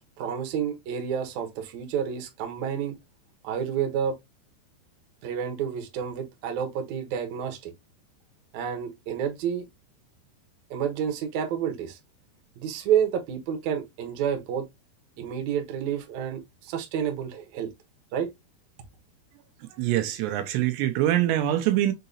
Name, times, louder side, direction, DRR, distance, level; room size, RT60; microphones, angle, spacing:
voice 1, 0.2-3.0 3.4-4.2 5.2-7.7 8.5-9.6 10.7-12.0 12.6-14.7 15.2-17.7 18.1-18.3, right 8 dB, 70° right, 1.7 m, -29 dB
voice 2, 19.8-21.9, right 13 dB, 90° right, 2.8 m, -24 dB
6.5 x 2.8 x 2.6 m
omnidirectional pair, 4.9 m